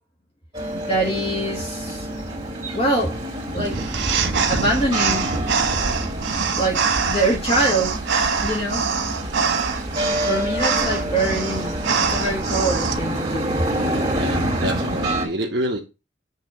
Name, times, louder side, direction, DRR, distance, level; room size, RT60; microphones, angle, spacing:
sound 1, 0.5-15.3, right 1 dB, 20° right, 2.7 m, -27 dB
voice 1, 0.8-2.1 2.7-3.2 3.5-3.8 4.5-5.3 6.5-8.0 8.4-8.9 10.2-11.8 12.1-13.5, right 1 dB, 30° left, 1.4 m, -24 dB
sound 2, 3.6-12.9, right 5 dB, 90° right, 1.5 m, -24 dB
voice 2, 13.9-15.8, right 1 dB, 60° right, 1.2 m, -27 dB
7.4 x 3.4 x 6.0 m
head